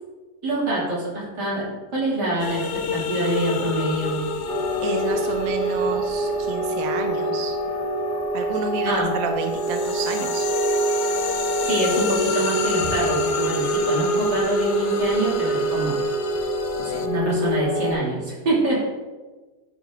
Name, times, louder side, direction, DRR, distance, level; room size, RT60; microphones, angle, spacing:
voice 1, 0.4-1.6 1.9-2.6 2.9-4.2 8.9-9.1 11.6-16.0 16.8-18.9, right 1 dB, 90° right, -6 dB, 3.5 m, -25 dB
sound 1, 2.4-8.8 9.2-17.1, left 4 dB, 55° left, 0.8 m, -29 dB
sound 2, 4.5-17.9, right 1 dB, 25° right, 1.3 m, -26 dB
voice 2, 4.8-7.6 8.3-10.5, right 6 dB, 65° right, 5 dB, 1.1 m, -30 dB
11.5 x 5.2 x 3.8 m, 1.2 s
omnidirectional pair, 1.7 m